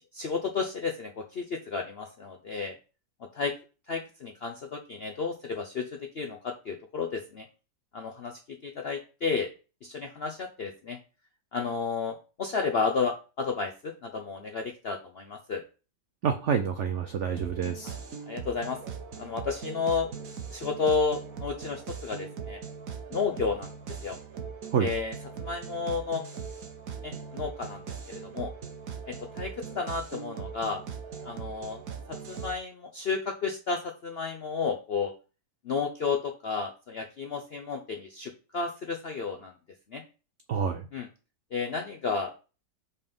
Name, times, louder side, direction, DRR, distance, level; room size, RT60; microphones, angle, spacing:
voice 1, 0.1-2.8 3.3-3.6 3.9-7.5 7.9-9.5 9.8-11.0 11.5-15.6 18.3-18.8 19.2-20.1 20.5-22.6 23.1-24.2 24.8-26.2 27.0-28.5 29.1-30.8 31.2-31.8 32.1-35.1 35.6-39.5 39.9-40.0 40.9-41.1 41.5-42.3, left 5 dB, 70° left, 3 dB, 0.5 m, -32 dB
voice 2, 16.2-18.0 24.7-24.9 40.5-40.9, right 7 dB, 80° right, 7 dB, 0.6 m, -28 dB
sound 1, 17.4-32.5, right 6 dB, 55° right, 1.3 m, -40 dB
5.4 x 4.3 x 5.2 m, 0.34 s
omnidirectional pair, 1.9 m